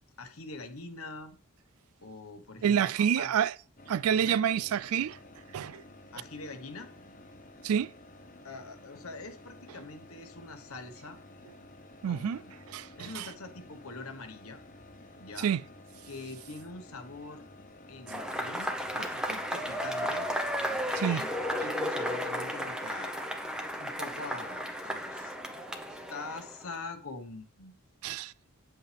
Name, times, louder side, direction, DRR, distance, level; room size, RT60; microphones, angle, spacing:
voice 1, 0.2-1.4 2.0-3.3 4.1-4.4 6.1-6.9 8.4-11.2 12.0-12.5 13.0-14.6 15.2-15.5 16.1-17.5 17.9-20.3 21.0-21.3 21.6-23.2 23.8-25.4 26.1-27.8, left 3 dB, 80° left, 1.3 m, -44 dB
voice 2, 2.6-3.5 3.9-5.2 5.5-5.8 7.6-7.9 12.0-12.4 12.7-13.3 15.4-15.6 21.0-21.2 28.0-28.3, right 8 dB, 85° right, 0.4 m, -28 dB
sound 1, 3.8-21.7, left 2 dB, 40° left, 1.0 m, -52 dB
Cheering / Applause / Crowd, 18.1-26.7, equal, 5° right, 0.9 m, -34 dB
8.9 x 7.9 x 3.4 m
head